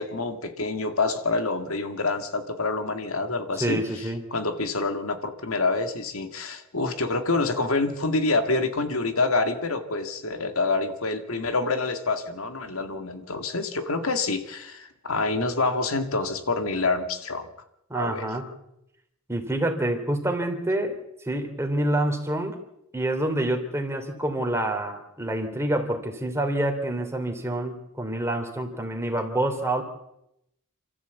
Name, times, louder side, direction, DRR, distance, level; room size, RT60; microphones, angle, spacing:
voice 1, 0.0-3.8 4.3-17.5 17.9-18.3, left 3 dB, 75° left, 8 dB, 2.1 m, -27 dB
voice 2, 3.5-4.2 17.9-18.5 19.3-20.9 21.2-22.6 22.9-29.8, right 1 dB, 10° right, 4 dB, 3.0 m, -27 dB
28.0 x 13.5 x 8.2 m, 0.83 s
head